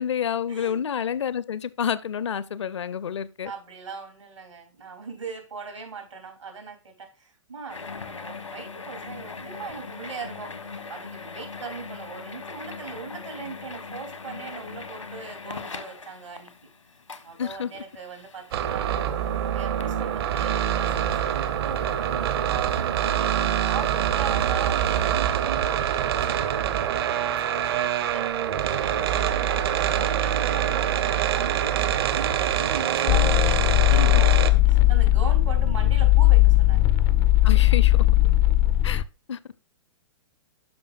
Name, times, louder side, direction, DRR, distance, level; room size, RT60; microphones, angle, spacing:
voice 1, 0.0-3.5 17.4-17.8 37.4-38.0 38.8-39.0 39.3-39.4, left 8 dB, 65° left, 0.7 m, -29 dB
voice 2, 3.4-10.5 10.9-16.5 17.2-19.0 19.5-26.5 27.1-34.3 34.6-36.8, right 5 dB, 80° right, 3.5 m, -39 dB
sound 1, 7.7-25.2, left 4 dB, 85° left, 1.3 m, -42 dB
sound 2, 18.5-34.5, right 10 dB, 55° right, 0.9 m, -25 dB
sound 3, 33.1-39.0, left 16 dB, 20° left, 0.4 m, -18 dB
12.5 x 5.3 x 2.5 m
figure-of-eight pair, 115°, 16 cm